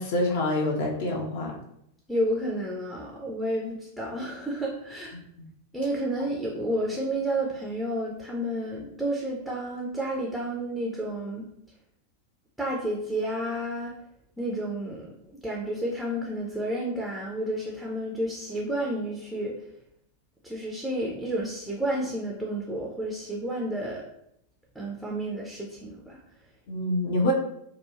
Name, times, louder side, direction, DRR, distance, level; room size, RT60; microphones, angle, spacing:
voice 1, 0.0-1.5 5.1-5.2 26.7-27.3, left 1 dB, 55° left, 0 dB, 0.6 m, -26 dB
voice 2, 2.1-5.1 5.7-11.5 12.6-14.0 14.4-15.1 15.4-19.6 20.4-24.0 24.8-26.2, right 1 dB, ahead, -3 dB, 0.5 m, -31 dB
3.0 x 2.2 x 2.4 m, 0.75 s
figure-of-eight pair, 90°, 0 cm